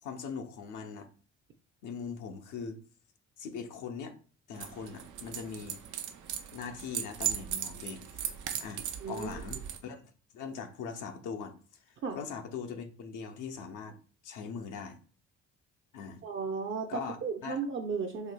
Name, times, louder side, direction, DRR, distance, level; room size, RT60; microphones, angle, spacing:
voice 1, 0.0-1.1 1.8-2.8 3.4-4.2 4.5-5.8 6.5-8.2 8.6-10.0 10.3-11.6 12.1-14.0 14.2-15.0 15.9-16.2 16.9-17.2 17.4-17.6, left 6 dB, 85° left, 0.7 m, -41 dB
sound 1, 4.5-9.8, right 9 dB, 85° right, 0.6 m, -38 dB
voice 2, 9.0-9.4 12.0-12.2 16.2-18.3, right 5 dB, 45° right, 0.5 m, -35 dB
4.5 x 2.6 x 2.2 m
cardioid pair, 90°, 30 cm